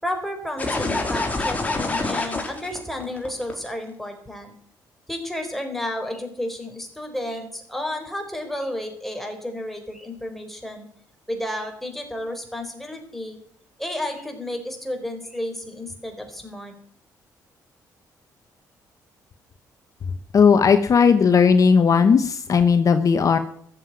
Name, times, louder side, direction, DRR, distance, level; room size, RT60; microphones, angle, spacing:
voice 1, 0.0-4.5 5.1-10.9 11.3-13.4 13.8-16.7, left 1 dB, 5° left, 4 dB, 4.3 m, -32 dB
sound 1, 0.6-3.7, left 2 dB, 20° left, 4.0 m, -26 dB
voice 2, 20.3-23.4, left 6 dB, 50° left, 9 dB, 1.0 m, -16 dB
13.5 x 7.7 x 9.5 m, 0.63 s
cardioid pair, 80°, 7 cm